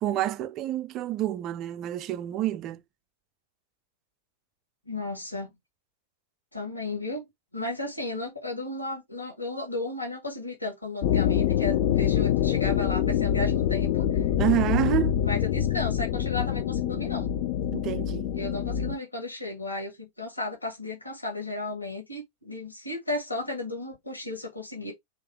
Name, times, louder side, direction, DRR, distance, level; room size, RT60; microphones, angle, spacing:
voice 1, 0.0-2.8 14.4-15.2 17.7-18.3, right 13 dB, 35° right, 0.4 m, -28 dB
voice 2, 4.9-5.5 6.5-7.3 7.5-14.3 15.2-17.3 18.3-24.9, left 2 dB, 85° left, 1.3 m, -34 dB
sound 1, 11.0-19.0, left 10 dB, 50° left, 0.3 m, -25 dB
3.2 x 2.9 x 4.4 m
figure-of-eight pair, 90°, 0 cm